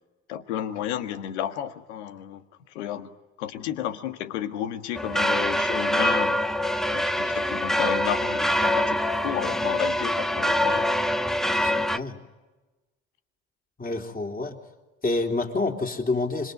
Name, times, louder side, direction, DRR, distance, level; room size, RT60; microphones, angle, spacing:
voice 1, 0.3-2.4 2.8-3.1 3.4-6.4 6.9-10.9, left 11 dB, 85° left, 9 dB, 1.7 m, -32 dB
sound 1, 5.0-12.0, left 1 dB, ahead, 1.2 m, -24 dB
voice 2, 11.5-12.2 13.8-14.6 15.0-16.5, left 3 dB, 25° left, 3 dB, 3.7 m, -28 dB
26.0 x 22.5 x 9.5 m, 1.2 s
hypercardioid pair, 65°, 33 cm